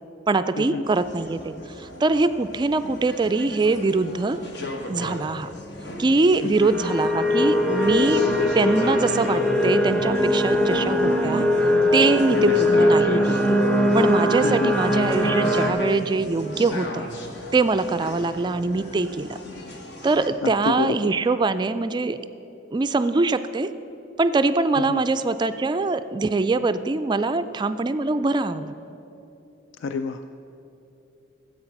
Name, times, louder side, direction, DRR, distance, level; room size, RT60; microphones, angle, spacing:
voice 1, 0.3-4.4 4.9-5.5 6.0-8.3 8.5-11.4 11.9-13.5 13.9-17.1 17.5-19.4 20.0-22.2 22.7-23.7 24.2-28.7, right 3 dB, 25° right, 11 dB, 0.3 m, -23 dB
sound 1, 0.8-20.3, left 1 dB, 65° left, 1.3 m, -37 dB
sound 2, 6.7-15.7, left 1 dB, 5° left, 0.6 m, -21 dB
voice 2, 14.4-14.7 20.4-21.0 24.8-25.0 29.8-30.3, left 4 dB, 85° left, 9 dB, 0.4 m, -28 dB
13.5 x 7.9 x 5.8 m, 2.9 s
head